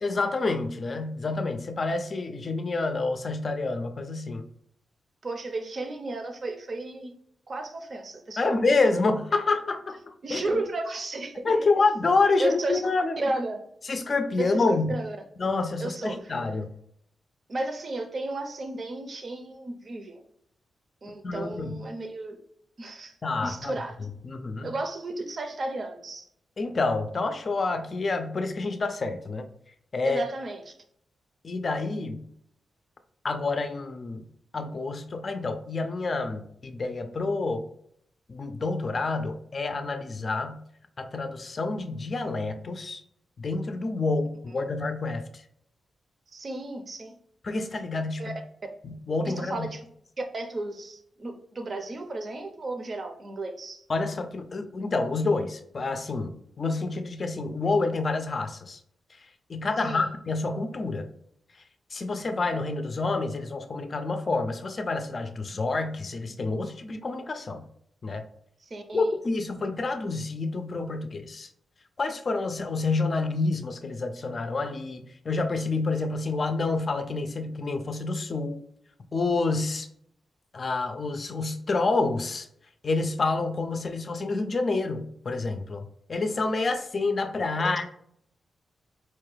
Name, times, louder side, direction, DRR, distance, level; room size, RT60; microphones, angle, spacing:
voice 1, 0.0-4.5 8.4-10.4 11.4-13.2 13.8-15.0 15.4-16.7 21.2-21.9 23.2-23.7 24.2-24.7 26.6-29.5 29.9-30.2 31.4-32.3 33.2-34.2 34.5-37.6 38.3-40.6 41.0-43.0 43.4-45.4 47.4-48.4 48.8-49.7 53.9-58.8 59.5-61.1 61.9-67.6 68.0-68.2 68.9-71.5 72.0-78.6 79.1-79.9 80.5-82.5 82.8-85.8 86.1-87.8, left 3 dB, 45° left, 7 dB, 0.4 m, -28 dB
voice 2, 5.2-7.1 7.5-8.6 10.2-11.5 12.4-12.8 13.2-13.6 14.4-15.2 15.8-16.4 17.5-20.2 21.0-22.4 22.8-23.1 23.4-24.0 24.6-26.3 30.0-30.6 46.3-47.2 48.2-48.3 49.2-49.8 50.3-53.8 59.8-60.1 68.6-69.1, right 2 dB, 45° right, 5 dB, 0.6 m, -33 dB
4.3 x 2.3 x 3.2 m, 0.70 s
cardioid pair, 85°, 0 cm